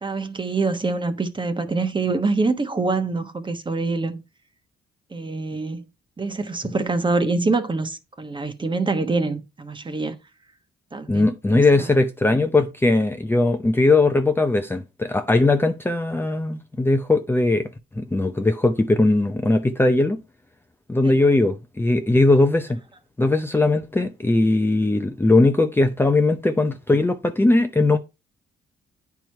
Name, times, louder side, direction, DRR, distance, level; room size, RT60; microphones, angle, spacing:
voice 1, 0.0-4.2 5.1-5.8 6.2-10.2 10.9-11.9 21.0-21.1, right 3 dB, 25° right, 1.1 m, -25 dB
voice 2, 11.1-17.7 18.0-20.2 20.9-22.8 23.2-28.0, left 2 dB, 10° left, 0.6 m, -19 dB
9.0 x 4.7 x 4.5 m
cardioid pair, 90°, 20 cm